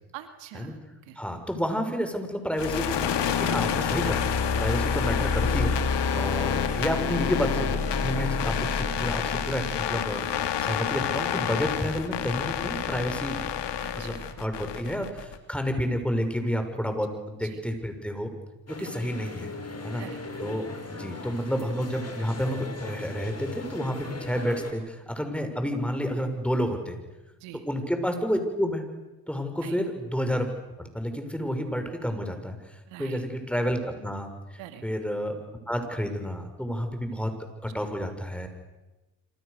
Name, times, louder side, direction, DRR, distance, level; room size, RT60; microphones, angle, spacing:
voice 1, 0.1-1.2 6.1-6.3 13.8-14.3 14.9-15.1 17.4-17.6 18.8-18.9 20.0-20.2 27.4-27.7 29.6-29.8 32.9-33.2 34.6-34.9, right 12 dB, 85° right, 7 dB, 2.5 m, -45 dB
voice 2, 1.2-4.2 4.6-5.7 6.2-13.4 13.9-18.3 18.7-19.5 19.8-20.0 20.4-27.0 27.7-28.8 29.3-30.5 30.8-32.6 33.0-34.3 34.8-35.4 35.7-37.3 37.6-38.5, equal, 5° left, 6 dB, 6.4 m, -30 dB
sound 1, 2.6-15.4, left 7 dB, 65° left, 2.8 m, -28 dB
sound 2, 18.7-24.7, left 3 dB, 35° left, 6.5 m, -39 dB
27.5 x 26.5 x 6.9 m, 1.1 s
supercardioid pair, 60°, 44 cm